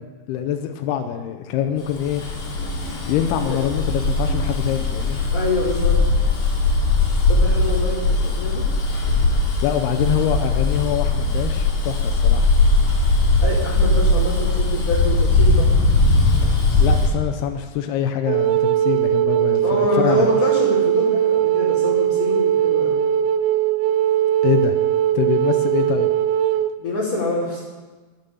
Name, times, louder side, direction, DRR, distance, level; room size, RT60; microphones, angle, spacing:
voice 1, 0.0-2.2 3.1-5.2 9.3-12.5 16.8-20.3 24.4-24.8 25.1-26.1, left 9 dB, 90° left, 6 dB, 2.7 m, -24 dB
Bus, 1.9-17.1, left 2 dB, 65° left, 4.2 m, -19 dB
voice 2, 5.3-6.0 7.3-8.7 13.4-15.7 19.6-23.0 26.8-27.6, left 2 dB, 40° left, -9 dB, 3.9 m, -25 dB
Wind instrument woodwind instrument, 18.3-26.7, right 11 dB, 80° right, 2.3 m, -19 dB
13.0 x 9.1 x 7.0 m, 1.3 s
omnidirectional pair, 4.6 m